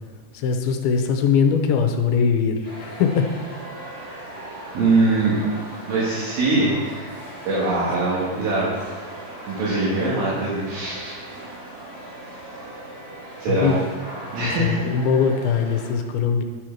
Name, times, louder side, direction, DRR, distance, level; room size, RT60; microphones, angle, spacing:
voice 1, 0.3-3.4 13.5-13.8 14.6-16.4, left 6 dB, 90° left, 5 dB, 2.6 m, -21 dB
sound 1, 2.6-15.9, right 1 dB, 40° right, 3.8 m, -38 dB
voice 2, 4.7-5.4 5.9-7.1 7.4-8.7 9.5-11.2 13.4-13.8 14.3-14.8, right 2 dB, 70° right, -7 dB, 3.4 m, -22 dB
12.5 x 6.3 x 4.5 m, 1.5 s
omnidirectional pair, 4.4 m